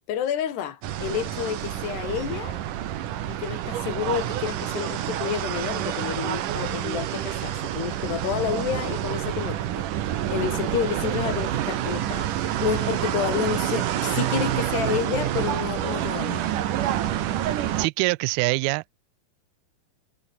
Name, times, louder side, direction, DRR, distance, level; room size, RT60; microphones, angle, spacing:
voice 1, 0.1-2.6 3.2-9.9 10.1-12.3 12.6-16.5, left 9 dB, 80° left, 4.8 m, -30 dB
sound 1, 0.8-17.9, right 12 dB, 60° right, 2.7 m, -28 dB
voice 2, 17.8-18.9, right 25 dB, 80° right, 2.3 m, -24 dB
omnidirectional pair, 4.7 m